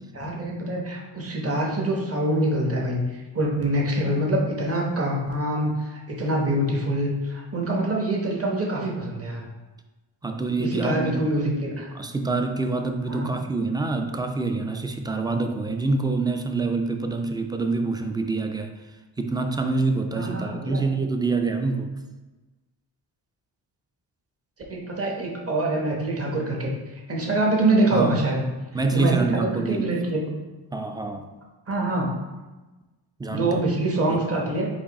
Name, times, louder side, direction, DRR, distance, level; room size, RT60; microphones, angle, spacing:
voice 1, 0.1-9.5 10.6-11.9 13.1-13.3 20.2-20.9 24.7-26.7 27.1-28.4 28.9-30.3 31.7-32.1 33.3-34.7, right 1 dB, 30° right, -1 dB, 1.1 m, -25 dB
voice 2, 10.2-11.2 11.9-18.8 19.2-21.9 27.9-28.2 28.7-30.0 30.7-31.2 33.2-33.6 34.0-34.2, right 3 dB, 10° right, 5 dB, 0.3 m, -26 dB
4.8 x 2.7 x 4.1 m, 1.2 s
cardioid pair, 80°, 48 cm